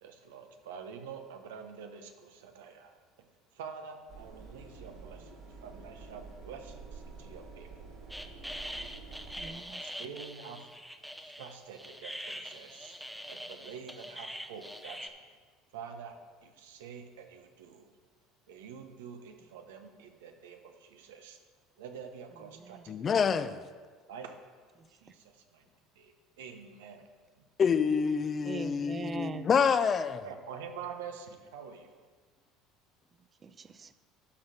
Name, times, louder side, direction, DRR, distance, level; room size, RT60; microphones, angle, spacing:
voice 1, 0.0-3.0 3.5-8.0 9.7-10.7 11.2-13.0 13.3-15.3 15.7-17.9 18.5-21.4 21.8-23.3 24.1-24.4 24.9-25.7 25.9-27.1 27.4-27.5 30.2-32.0, right 6 dB, 85° right, 0.9 m, -47 dB
sound 1, 4.1-9.5, right 4 dB, 65° right, 2.8 m, -48 dB
sound 2, 8.1-15.1, equal, ahead, 0.7 m, -43 dB
voice 2, 9.4-9.9 22.5-22.8 24.8-24.9 28.4-29.5 33.4-33.9, right 5 dB, 30° right, 0.5 m, -41 dB
voice 3, 22.9-23.6 27.6-30.3, left 6 dB, 35° left, 0.5 m, -27 dB
12.0 x 4.1 x 6.4 m
supercardioid pair, 90°, 0 cm